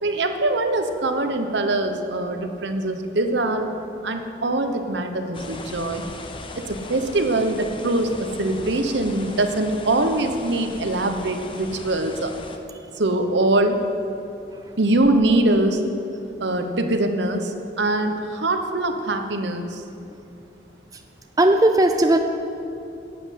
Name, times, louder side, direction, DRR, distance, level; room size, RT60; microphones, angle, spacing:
voice 1, 0.0-3.7 4.0-6.0 6.6-12.3 13.0-13.8 14.8-15.8 16.4-19.8, right 2 dB, 75° right, 6 dB, 1.0 m, -23 dB
sound 1, 5.3-12.6, left 2 dB, 30° left, 0.7 m, -38 dB
voice 2, 21.4-22.2, right 1 dB, 20° right, 6 dB, 0.5 m, -17 dB
11.5 x 7.8 x 8.3 m, 2.7 s
head